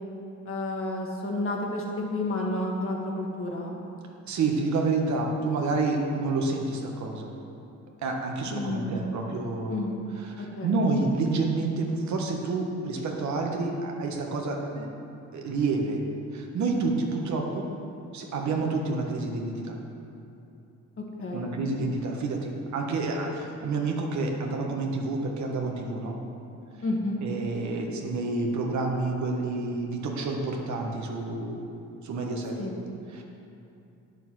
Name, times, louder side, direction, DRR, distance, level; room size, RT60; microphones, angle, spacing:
voice 1, 0.5-3.7 8.5-9.2 9.7-9.9 10.4-10.8 21.0-21.6 26.8-27.2 32.6-32.7, left 2 dB, 45° left, -1 dB, 2.0 m, -31 dB
voice 2, 4.3-7.3 8.0-9.9 10.4-14.9 15.3-16.0 16.3-17.6 18.1-19.8 21.3-26.2 27.2-31.6 32.0-32.6 33.1-33.2, right 3 dB, 70° right, 1 dB, 1.5 m, -29 dB
9.3 x 6.7 x 6.2 m, 2.8 s
cardioid pair, 90°, 30 cm